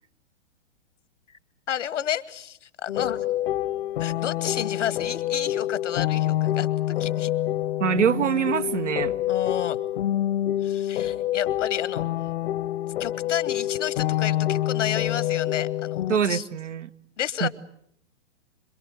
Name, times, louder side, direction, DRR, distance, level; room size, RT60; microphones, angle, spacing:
voice 1, 1.7-3.3 4.0-7.3 9.3-9.8 10.6-12.0 13.0-16.5 17.2-17.5, left 10 dB, 80° left, 1.3 m, -31 dB
sound 1, 2.9-16.2, left 13 dB, 60° left, 1.0 m, -27 dB
voice 2, 7.8-9.1 16.1-16.9 17.4-17.5, right 7 dB, 80° right, 1.2 m, -24 dB
26.5 x 23.0 x 7.9 m
hypercardioid pair, 125°, 36 cm